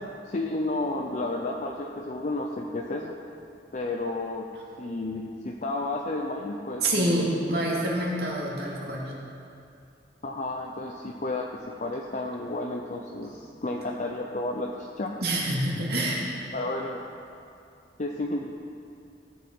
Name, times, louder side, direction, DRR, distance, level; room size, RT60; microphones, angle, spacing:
voice 1, 0.2-3.1 3.7-4.4 4.8-7.3 10.2-15.1 16.5-17.1 18.0-18.5, left 2 dB, 45° left, 0 dB, 0.7 m, -32 dB
voice 2, 6.8-9.1 15.2-16.3, right 1 dB, 65° right, -3 dB, 2.3 m, -27 dB
17.0 x 7.4 x 4.7 m, 2.5 s
head